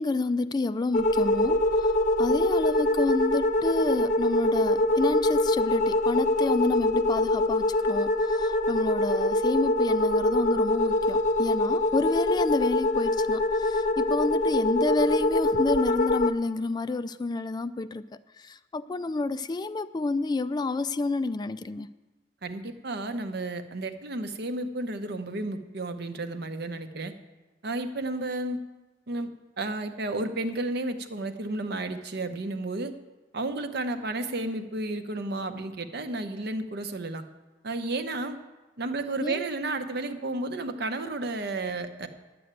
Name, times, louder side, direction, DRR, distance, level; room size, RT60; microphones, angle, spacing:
voice 1, 0.0-1.9 2.2-18.0 18.4-21.9 39.2-39.4, left 3 dB, 25° left, 13 dB, 0.3 m, -29 dB
sound 1, 0.9-16.3, left 1 dB, 40° left, 0.7 m, -24 dB
voice 2, 22.4-27.1 27.6-28.6 29.1-29.3 29.6-32.9 33.3-37.2 37.6-38.4 38.8-42.1, right 2 dB, 60° right, 8 dB, 0.8 m, -32 dB
10.0 x 7.8 x 8.8 m, 1.2 s
head